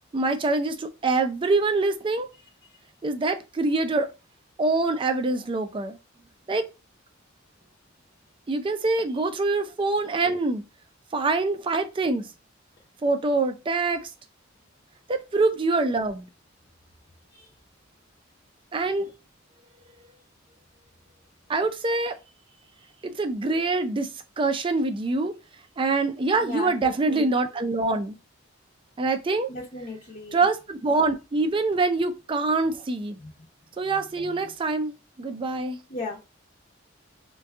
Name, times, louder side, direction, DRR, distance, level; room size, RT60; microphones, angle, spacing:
voice 1, 0.1-2.3 3.0-4.1 4.6-6.0 6.5-6.7 8.5-10.6 11.1-12.3 13.0-14.1 15.1-16.3 18.7-19.1 21.5-22.1 23.0-24.1 24.4-25.3 25.8-28.2 29.0-29.5 30.3-33.2 33.8-35.8, right 3 dB, 25° right, 0.3 m, -25 dB
voice 2, 26.4-27.3 29.5-30.5 33.2-33.3 34.2-34.4 35.9-36.2, left 2 dB, 40° left, 0.6 m, -36 dB
2.6 x 2.2 x 3.5 m
head